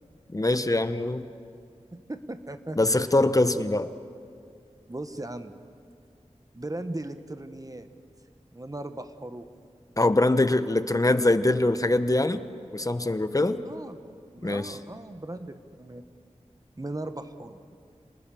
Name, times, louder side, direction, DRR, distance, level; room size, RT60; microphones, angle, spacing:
voice 1, 0.3-1.3 2.8-3.9 10.0-12.4 12.7-13.6 14.4-14.8, left 2 dB, 30° left, 11 dB, 1.0 m, -23 dB
voice 2, 1.9-3.6 4.9-5.5 6.5-7.9 8.5-9.5 13.6-14.0 14.3-16.0 16.8-17.6, right 1 dB, 30° right, 9 dB, 1.2 m, -38 dB
27.5 x 19.5 x 7.0 m, 2.3 s
wide cardioid pair, 50°, 12 cm